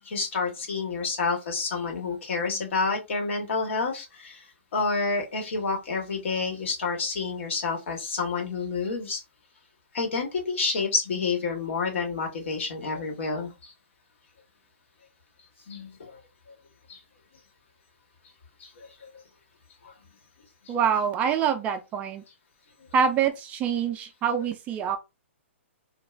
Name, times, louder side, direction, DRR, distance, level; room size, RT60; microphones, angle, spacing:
voice 1, 0.1-4.4 4.7-9.2 9.9-13.7 15.7-16.1 16.9-17.0 18.6-18.7, left 4 dB, 70° left, 1.2 m, -29 dB
voice 2, 20.7-22.2 22.9-25.0, right 7 dB, 20° right, 0.3 m, -25 dB
2.4 x 2.2 x 3.1 m
hypercardioid pair, 145°, 7 cm